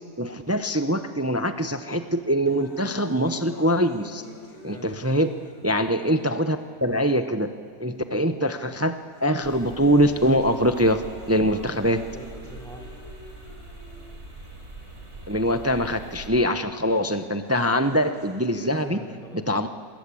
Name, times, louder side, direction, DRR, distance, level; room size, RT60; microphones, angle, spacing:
voice 1, 0.2-4.2 4.6-5.3 5.6-7.5 7.8-12.1 15.3-19.0 19.5-19.7, equal, 15° right, 9 dB, 0.6 m, -23 dB
sound 1, 2.5-6.5 7.2-7.3 8.2-8.5 8.9-14.5 15.4-15.5 17.0-18.5, left 1 dB, 80° left, 3.3 m, -47 dB
voice 2, 4.7-5.0 12.1-13.0 18.4-19.5, equal, ahead, 2 dB, 3.4 m, -42 dB
sound 2, 9.4-16.3, right 2 dB, 45° right, 4.4 m, -43 dB
27.5 x 23.5 x 8.5 m, 2.5 s
omnidirectional pair, 1.6 m